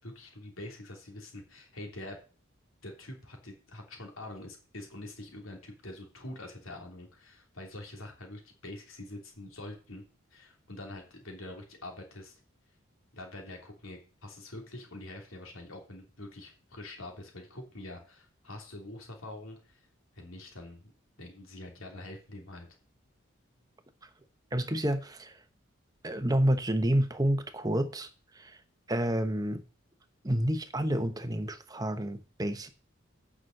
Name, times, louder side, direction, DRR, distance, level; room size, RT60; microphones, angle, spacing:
voice 1, 0.0-2.2 2.8-10.0 10.3-12.4 13.1-19.8 20.1-20.8 21.2-22.7, left 1 dB, 85° left, 3.1 m, -45 dB
voice 2, 24.5-25.4 26.0-28.6 28.9-29.6 30.2-32.7, right 1 dB, 20° right, 0.9 m, -29 dB
9.3 x 6.2 x 6.4 m
head